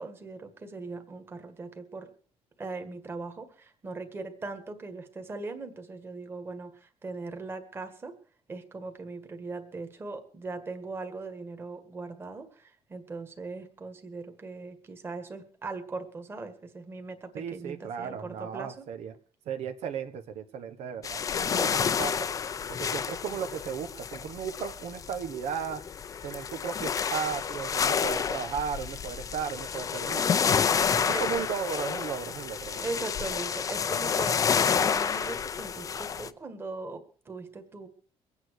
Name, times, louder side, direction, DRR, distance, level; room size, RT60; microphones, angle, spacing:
voice 1, 0.0-2.1 2.6-8.1 8.5-18.9 31.1-31.4 32.8-37.9, right 3 dB, 20° right, 6 dB, 1.8 m, -40 dB
voice 2, 17.3-19.1 19.5-22.3 22.7-25.8 26.2-30.3 30.9-32.9, right 7 dB, 80° right, 7 dB, 1.4 m, -35 dB
sound 1, 21.0-36.3, left 7 dB, 30° left, 0.6 m, -29 dB
23.5 x 9.0 x 4.8 m, 0.40 s
cardioid pair, 180°, 11 cm